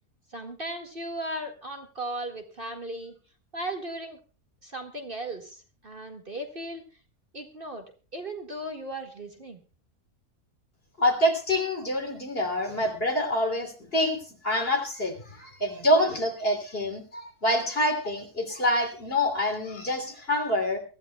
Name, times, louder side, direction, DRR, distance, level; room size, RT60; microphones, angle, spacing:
voice 1, 0.3-3.1 3.5-4.2 4.6-6.8 7.3-7.8 8.1-9.6, right 1 dB, 40° right, 3 dB, 2.0 m, -36 dB
voice 2, 11.0-20.8, left 1 dB, 40° left, 3 dB, 3.4 m, -26 dB
23.5 x 15.0 x 2.3 m, 0.36 s
omnidirectional pair, 1.5 m